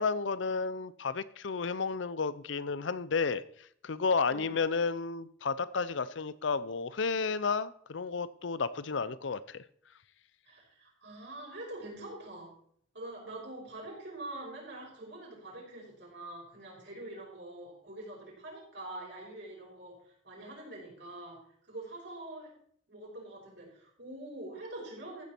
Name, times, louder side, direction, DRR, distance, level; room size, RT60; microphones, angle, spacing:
voice 1, 0.0-3.4 3.8-9.6, left 4 dB, 70° left, 16 dB, 0.6 m, -32 dB
voice 2, 10.4-12.5 12.9-21.4 21.7-22.5 22.9-25.2, right 1 dB, 60° right, -3 dB, 5.7 m, -45 dB
14.5 x 8.3 x 4.5 m, 0.63 s
head